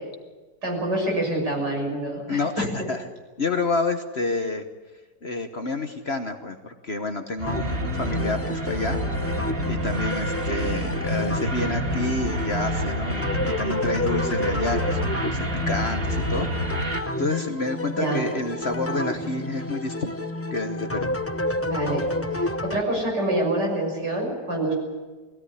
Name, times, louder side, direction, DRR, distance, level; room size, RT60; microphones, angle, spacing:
voice 1, 0.6-2.7 18.0-18.2 21.6-22.0 22.4-24.7, right 1 dB, 75° right, 0 dB, 7.0 m, -26 dB
voice 2, 2.3-3.1 3.4-4.6 5.2-9.0 9.6-20.1 20.5-21.1, left 2 dB, 40° left, 6 dB, 1.2 m, -29 dB
sound 1, 7.4-17.0, equal, 50° right, 2.2 m, -28 dB
sound 2, 7.5-22.8, left 1 dB, 20° left, 0.3 m, -30 dB
21.0 x 16.5 x 9.8 m, 1.3 s
omnidirectional pair, 1.9 m